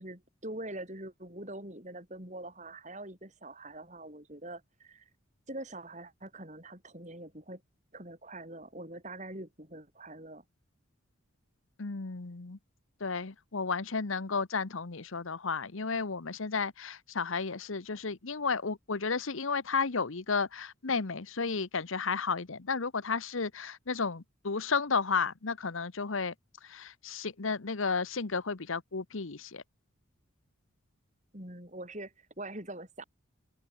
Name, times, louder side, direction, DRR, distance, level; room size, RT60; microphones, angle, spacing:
voice 1, 0.0-5.1 5.5-7.6 7.9-10.4 31.3-33.0, right 1 dB, 35° right, 6.5 m, -44 dB
voice 2, 11.8-12.6 13.0-26.3 26.6-29.6, left 5 dB, 70° left, 1.0 m, -33 dB
head